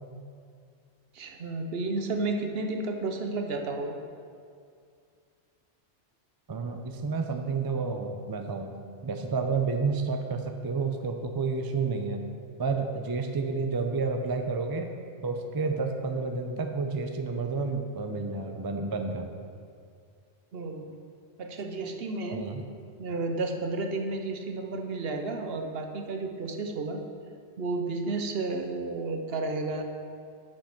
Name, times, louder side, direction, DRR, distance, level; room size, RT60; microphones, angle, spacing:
voice 1, 1.1-4.0 20.5-20.9 21.4-22.5 23.0-27.0 27.6-29.8, right 3 dB, 60° right, 4 dB, 0.9 m, -32 dB
voice 2, 6.5-8.7 9.0-12.2 12.6-14.9 15.2-19.3 22.3-22.7, right 4 dB, 35° right, 5 dB, 0.3 m, -30 dB
8.7 x 5.3 x 5.8 m, 2.2 s
omnidirectional pair, 1.2 m